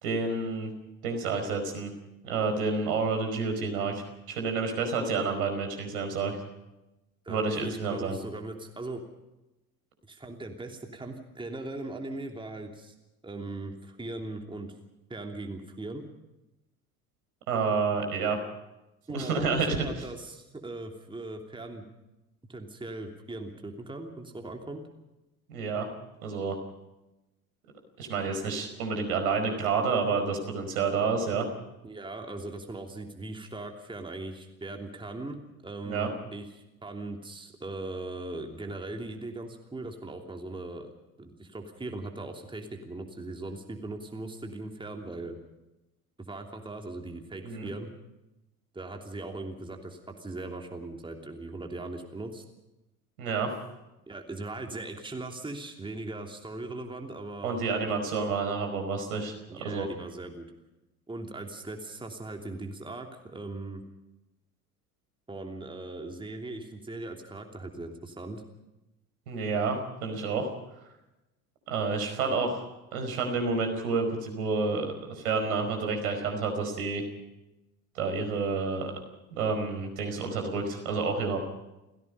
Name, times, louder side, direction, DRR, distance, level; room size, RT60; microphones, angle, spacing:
voice 1, 0.0-0.7 1.0-1.9 2.2-6.4 7.3-8.2 17.5-18.4 19.1-19.8 25.5-25.9 26.2-26.6 28.0-31.5 35.8-36.1 47.4-47.7 53.2-53.5 57.4-59.9 69.3-70.5 71.7-72.7 72.9-77.0 77.9-78.9 79.3-81.4, right 4 dB, 70° right, 5 dB, 5.1 m, -29 dB
voice 2, 7.2-9.0 10.1-12.9 13.2-14.7 15.1-16.0 19.1-21.9 22.5-24.8 31.8-35.4 35.6-40.9 41.2-45.4 46.3-47.9 48.7-52.4 54.1-58.3 59.5-60.5 61.1-63.8 65.3-68.4, right 2 dB, 10° right, 3 dB, 3.0 m, -39 dB
30.0 x 16.5 x 5.5 m, 0.98 s
figure-of-eight pair, 65°, 45 cm